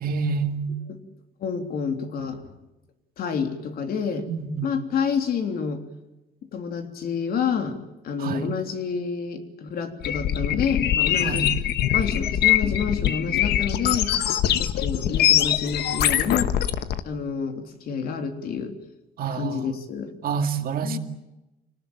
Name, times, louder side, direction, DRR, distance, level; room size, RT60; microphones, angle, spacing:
voice 1, 0.0-0.7 4.3-4.7 8.2-8.5 11.2-11.4 19.2-19.8 20.2-21.0, right 5 dB, 65° right, 2.1 m, -27 dB
voice 2, 1.4-2.5 3.2-4.3 4.6-5.8 6.5-7.8 8.0-11.5 11.9-14.2 14.6-16.5 17.0-18.7 19.3-20.1 20.8-21.0, left 6 dB, 65° left, 3.4 m, -28 dB
sound 1, 10.0-17.0, left 11 dB, 90° left, 1.3 m, -23 dB
26.5 x 19.0 x 9.1 m
cardioid pair, 145°, 17 cm